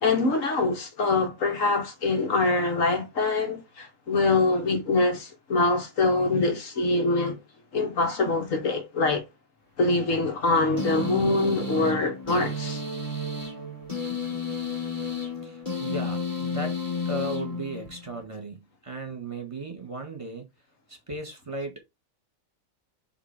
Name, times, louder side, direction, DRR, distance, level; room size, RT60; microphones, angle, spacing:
voice 1, 0.0-7.4 7.7-9.2 9.8-12.8, left 3 dB, 70° left, 1.7 m, -24 dB
sound 1, 10.8-18.2, left 3 dB, 25° left, 2.9 m, -32 dB
voice 2, 15.4-16.8 17.1-20.5 20.9-21.8, right 2 dB, 25° right, 1.7 m, -36 dB
7.4 x 3.3 x 4.9 m
omnidirectional pair, 1.4 m